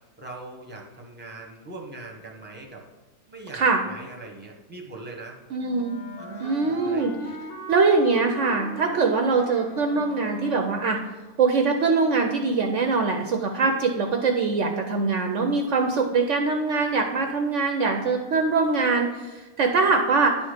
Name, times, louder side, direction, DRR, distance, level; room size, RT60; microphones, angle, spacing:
voice 1, 0.2-2.8 3.3-5.4 6.2-7.4, right 2 dB, 10° right, 1 dB, 1.1 m, -41 dB
voice 2, 5.5-6.0 6.4-7.1 7.7-11.0 11.4-20.4, right 4 dB, 65° right, 4 dB, 0.9 m, -23 dB
Wind instrument woodwind instrument, 5.6-11.1, equal, 55° left, 1.5 m, -37 dB
10.0 x 4.2 x 5.0 m, 1.2 s
omnidirectional pair, 1.5 m